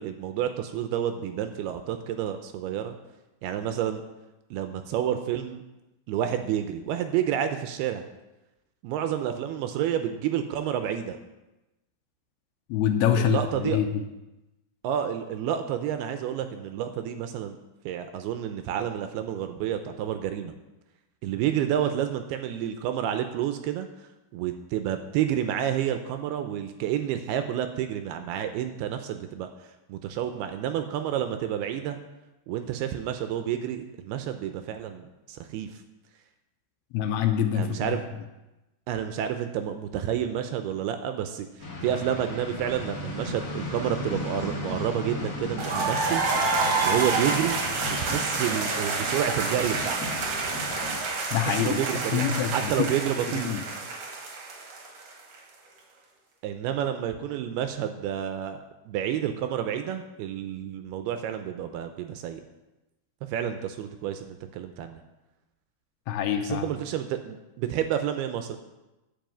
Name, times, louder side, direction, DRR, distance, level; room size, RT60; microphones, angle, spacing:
voice 1, 0.0-3.0 3.4-4.0 4.5-5.6 6.1-8.0 8.8-11.2 13.2-13.8 14.8-17.6 17.9-20.5 21.2-23.9 24.3-29.5 29.9-32.0 32.5-35.7 37.5-38.1 38.9-46.2 46.8-47.6 47.9-50.0 51.6-53.5 56.4-62.4 63.3-65.0 66.4-68.6, right 10 dB, 80° right, 8 dB, 2.4 m, -29 dB
voice 2, 12.7-14.0 36.9-38.0 51.3-51.8 52.1-52.9 53.4-53.6 66.1-66.7, left 9 dB, 80° left, 6 dB, 2.5 m, -25 dB
sound 1, 41.6-51.0, left 1 dB, 30° left, 1.7 m, -36 dB
sound 2, 45.6-55.4, right 3 dB, 60° right, 1.8 m, -28 dB
10.5 x 5.4 x 7.6 m, 1.0 s
omnidirectional pair, 4.9 m